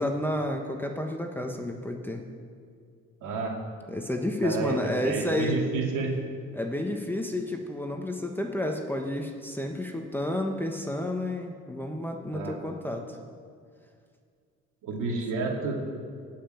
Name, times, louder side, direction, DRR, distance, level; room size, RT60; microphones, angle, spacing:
voice 1, 0.0-2.2 3.9-5.7 6.5-13.2 15.0-15.1, left 1 dB, 5° left, 2 dB, 1.1 m, -31 dB
voice 2, 3.2-3.6 4.4-6.2 12.3-12.6 14.8-15.8, right 4 dB, 85° right, 0 dB, 2.4 m, -30 dB
16.0 x 5.8 x 9.1 m, 2.2 s
cardioid pair, 90°, 30 cm